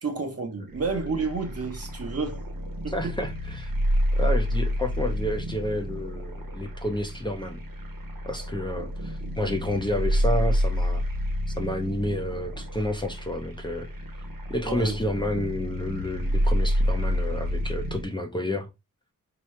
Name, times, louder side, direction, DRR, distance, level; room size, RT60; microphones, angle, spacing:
voice 1, 0.0-2.5 2.8-3.2 14.7-15.0 15.3-15.4, right 4 dB, 45° right, 1.0 m, -30 dB
sound 1, 0.7-18.0, equal, 90° right, 1.2 m, -29 dB
voice 2, 2.9-3.7 4.2-7.6 8.3-11.0 11.6-13.9 14.5-18.7, left 1 dB, 15° left, 0.5 m, -30 dB
4.6 x 2.9 x 3.1 m
wide cardioid pair, 150°, 33 cm